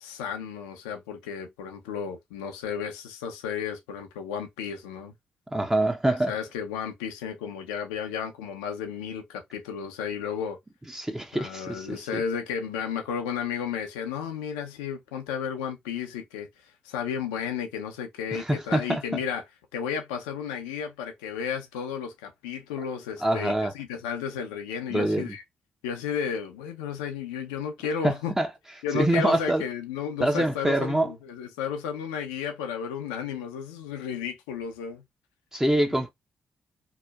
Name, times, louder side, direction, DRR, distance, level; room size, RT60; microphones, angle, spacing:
voice 1, 0.0-5.1 6.1-10.6 11.3-16.5 16.8-19.4 19.7-25.4 25.8-28.4 28.8-35.0, left 7 dB, 90° left, 0.5 m, -33 dB
voice 2, 5.5-6.3 10.9-12.0 18.3-19.0 23.2-23.7 24.9-25.3 28.0-28.5 28.9-29.6 30.2-31.1 35.5-36.1, right 1 dB, 15° right, 0.6 m, -25 dB
2.7 x 2.1 x 2.3 m
hypercardioid pair, 45°, 4 cm